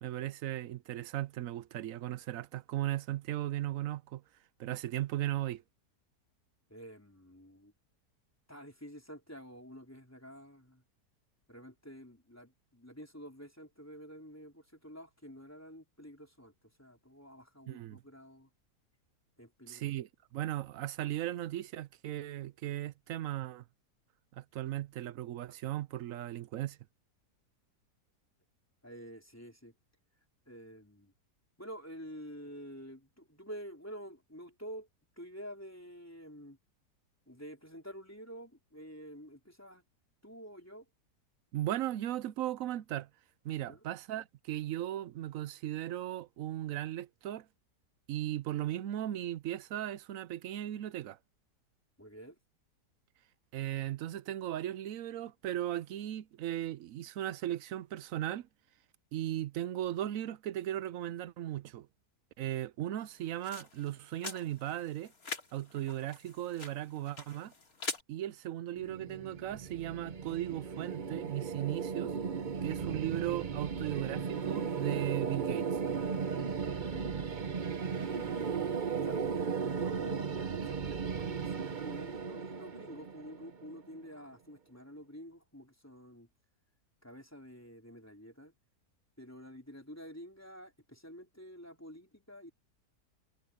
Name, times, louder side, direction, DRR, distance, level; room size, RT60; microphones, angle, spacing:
voice 1, 0.0-4.2 4.6-5.6 17.7-18.0 19.7-23.6 24.3-26.8 41.5-43.1 43.4-47.5 48.1-51.2 53.5-58.5 59.1-61.9 62.4-65.1 65.5-67.5 68.1-72.1 72.6-75.8, right 13 dB, 65° right, 0.9 m, -37 dB
voice 2, 6.7-7.7 8.5-10.8 11.5-18.5 19.4-19.9 28.8-29.7 30.5-31.1 31.6-34.9 35.2-36.6 37.3-39.8 40.2-40.9 43.6-43.8 52.0-52.4 76.8-77.3 77.9-80.3 80.6-86.3 87.0-88.5 89.2-92.5, equal, 10° left, 4.0 m, -49 dB
sound 1, 63.0-68.0, left 4 dB, 60° left, 3.2 m, -44 dB
sound 2, 68.8-83.8, right 6 dB, 40° right, 0.8 m, -36 dB
omnidirectional pair, 1.7 m